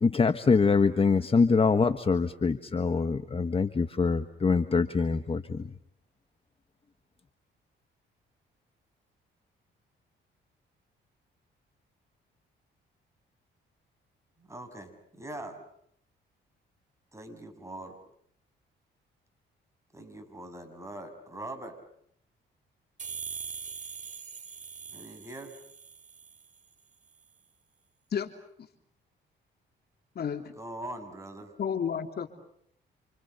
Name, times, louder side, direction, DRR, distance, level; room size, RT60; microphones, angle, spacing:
voice 1, 0.0-5.7, left 4 dB, 30° left, 10 dB, 1.4 m, -24 dB
voice 2, 14.4-15.6 17.1-18.0 19.9-21.8 24.9-25.5 30.6-31.5, right 1 dB, 15° right, 6 dB, 7.2 m, -42 dB
sound 1, 23.0-26.6, right 6 dB, 40° right, 2.5 m, -42 dB
voice 3, 30.1-30.5 31.6-32.3, left 7 dB, 55° left, 7 dB, 3.2 m, -31 dB
30.0 x 28.0 x 6.8 m, 0.68 s
cardioid pair, 90°, 20 cm